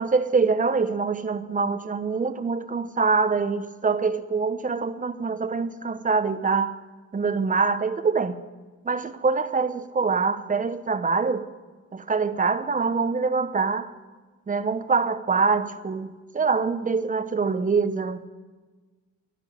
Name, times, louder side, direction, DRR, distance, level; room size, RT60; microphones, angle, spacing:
voice 1, 0.0-6.8 7.1-8.4 8.8-11.5 11.9-13.9 14.5-18.2, right 4 dB, 25° right, 1.0 m, -24 dB
12.5 x 11.0 x 9.0 m
cardioid pair, 90°, 30 cm